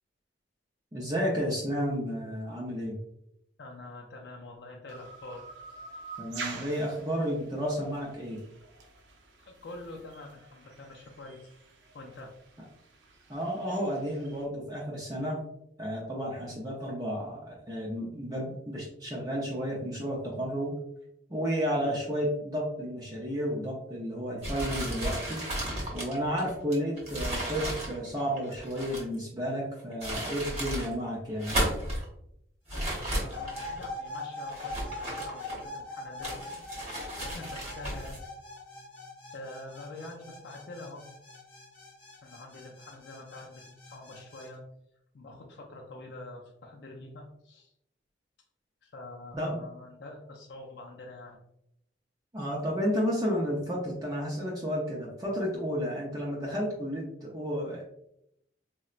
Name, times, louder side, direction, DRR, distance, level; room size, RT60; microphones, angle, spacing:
voice 1, 0.9-3.0 6.2-8.4 13.3-15.4 15.8-20.7 21.3-25.4 25.9-31.6 49.3-49.6 52.3-57.8, equal, 20° right, -4 dB, 0.5 m, -32 dB
voice 2, 3.6-5.5 9.4-11.5 11.9-12.3 16.4-16.6 21.8-22.0 32.7-38.2 39.3-41.0 42.2-44.7 45.1-47.7 48.8-51.4, left 2 dB, 65° left, 0 dB, 0.4 m, -46 dB
sound 1, 4.9-14.4, right 4 dB, 85° right, 0.5 m, -47 dB
sound 2, 24.4-29.2 29.8-30.9 31.3-32.0 32.7-33.9 34.5-35.8 36.2-38.2, right 1 dB, 35° right, 0.9 m, -34 dB
sound 3, 33.3-44.5, left 2 dB, 30° left, 0.8 m, -42 dB
3.9 x 2.1 x 2.4 m, 0.78 s
head